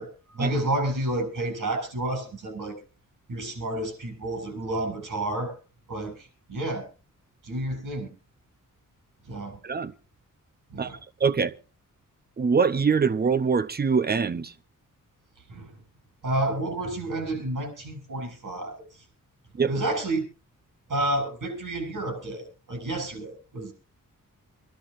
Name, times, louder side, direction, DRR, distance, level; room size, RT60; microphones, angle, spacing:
voice 1, 0.0-2.8 3.3-5.5 5.9-6.8 7.4-8.1 9.3-9.6 10.7-11.0 15.5-15.7 16.2-18.8 19.7-20.2 20.9-23.7, right 1 dB, 65° right, 7.3 m, -30 dB
voice 2, 10.8-11.5 12.4-14.5 19.5-19.7, right 5 dB, 30° right, 0.6 m, -24 dB
26.5 x 11.5 x 2.5 m
wide cardioid pair, 180°, 33 cm